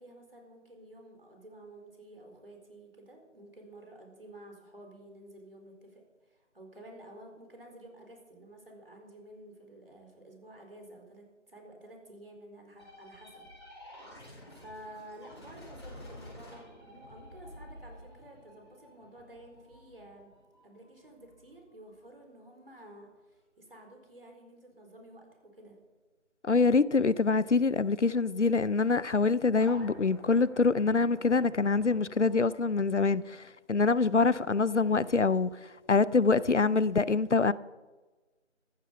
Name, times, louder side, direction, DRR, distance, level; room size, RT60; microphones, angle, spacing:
voice 1, 0.0-13.5 14.0-14.1 14.5-20.3 20.6-25.8, right 1 dB, 50° right, 4.4 m, -51 dB
sound 1, 12.8-22.2 29.5-32.4, left 1 dB, 20° left, 4.1 m, -50 dB
voice 2, 26.4-35.5 35.9-37.5, left 4 dB, 70° left, 0.7 m, -25 dB
14.5 x 12.5 x 5.9 m
figure-of-eight pair, 170°, 37 cm